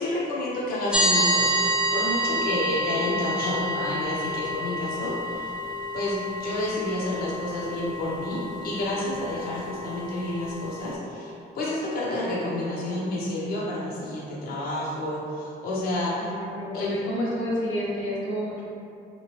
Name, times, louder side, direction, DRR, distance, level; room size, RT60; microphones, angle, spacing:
voice 1, 0.0-5.5 5.9-16.3 16.7-17.0, left 1 dB, 50° left, -6 dB, 0.5 m, -30 dB
sound 1, 0.9-10.9, equal, 5° right, 0.3 m, -28 dB
voice 2, 16.2-18.6, equal, 85° left, -6 dB, 1.0 m, -29 dB
3.0 x 2.8 x 2.8 m, 2.7 s
cardioid pair, 90°, 20 cm